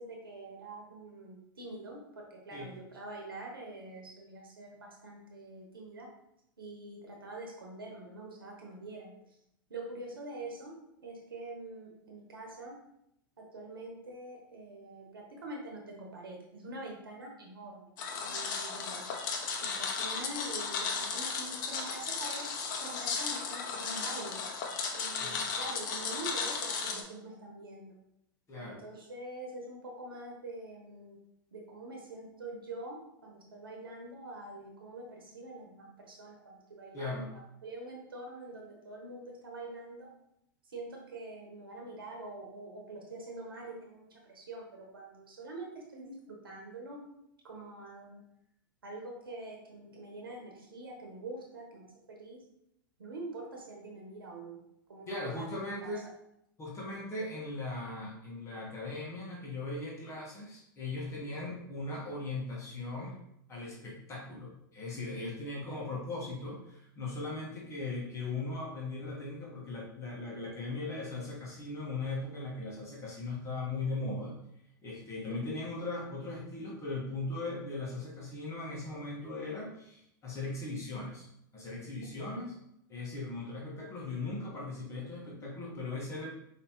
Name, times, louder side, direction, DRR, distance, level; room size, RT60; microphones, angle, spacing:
voice 1, 0.0-6.1 6.6-9.1 9.7-10.7 11.0-12.8 13.4-19.1 19.5-22.4 22.8-24.4 24.9-28.0 28.5-31.2 31.5-37.3 37.6-40.1 40.7-47.0 47.4-48.2 48.8-52.4 53.0-54.6 54.9-55.9 75.3-75.5 82.2-82.5, right 2 dB, 90° right, 0 dB, 1.1 m, -45 dB
sound 1, 18.0-27.0, left 5 dB, 60° left, 0.9 m, -35 dB
voice 2, 25.2-25.5 28.5-28.8 36.9-37.3 55.1-56.0 56.6-63.2 63.5-74.4 74.8-81.3 81.5-82.5 82.9-86.3, left 2 dB, 25° left, -4 dB, 1.4 m, -39 dB
5.3 x 3.0 x 3.0 m, 0.78 s
hypercardioid pair, 105°, 11 cm